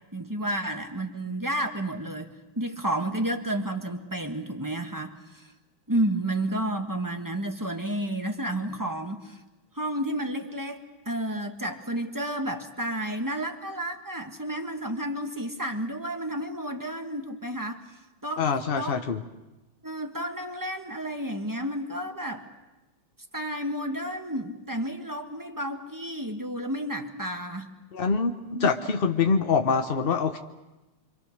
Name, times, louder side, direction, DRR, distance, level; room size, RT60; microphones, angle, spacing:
voice 1, 0.1-5.5 5.9-9.4 9.7-17.8 18.2-18.5 18.8-19.0 19.8-22.5 23.3-27.7 28.5-28.7, right 1 dB, 10° right, 5 dB, 1.2 m, -31 dB
voice 2, 18.4-19.2 27.9-30.4, left 5 dB, 45° left, 5 dB, 0.7 m, -25 dB
26.5 x 25.5 x 6.5 m, 1.1 s
omnidirectional pair, 2.3 m